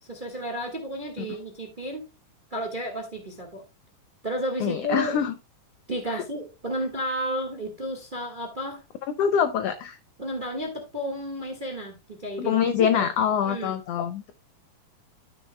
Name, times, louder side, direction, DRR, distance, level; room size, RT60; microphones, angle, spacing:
voice 1, 0.1-2.0 2.5-3.6 4.2-5.2 5.9-8.8 10.2-13.0 13.4-13.8, equal, 30° right, 0.9 m, -32 dB
voice 2, 4.6-5.3 6.1-6.2 9.2-10.0 12.4-14.3, left 8 dB, 80° left, 1.4 m, -25 dB
13.0 x 6.3 x 2.2 m
omnidirectional pair, 3.6 m